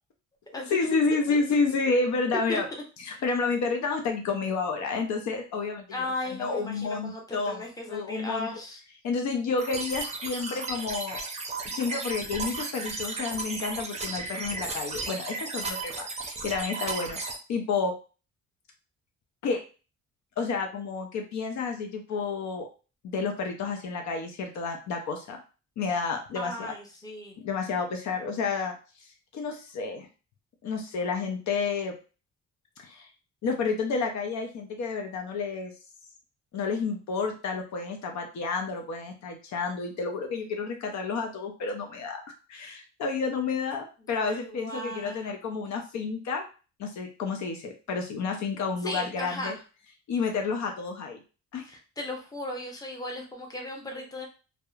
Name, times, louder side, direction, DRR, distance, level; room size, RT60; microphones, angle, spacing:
voice 1, 0.7-2.6 3.0-7.6 7.9-8.5 9.0-11.2 11.7-17.2 17.5-17.9 19.4-19.6 20.4-22.7 23.0-25.4 25.8-26.5 27.4-28.8 29.3-30.1 30.6-31.9 32.8-33.1 33.4-35.7 36.5-42.2 42.5-46.4 46.8-49.6 50.1-51.2 51.5-51.6, left 4 dB, 65° left, 4 dB, 0.6 m, -30 dB
voice 2, 5.9-8.8 26.3-27.4 44.1-45.3 48.8-49.6 51.7-54.3, left 1 dB, 10° left, 1 dB, 0.7 m, -36 dB
sound 1, 9.6-17.4, right 3 dB, 20° right, 0.5 m, -34 dB
2.8 x 2.1 x 2.3 m, 0.34 s
cardioid pair, 90°, 30 cm